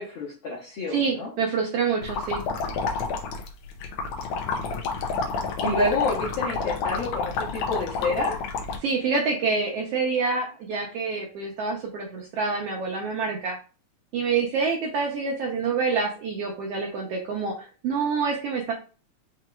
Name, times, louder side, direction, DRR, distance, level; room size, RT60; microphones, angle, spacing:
voice 1, 0.0-1.3 5.6-8.4, left 2 dB, 60° left, -5 dB, 1.5 m, -28 dB
voice 2, 0.9-2.4 8.8-13.6 14.1-18.7, right 5 dB, 70° right, -1 dB, 1.5 m, -27 dB
sound 1, 2.0-8.8, left 4 dB, 85° left, 2.2 m, -29 dB
5.8 x 2.9 x 2.3 m, 0.35 s
omnidirectional pair, 3.4 m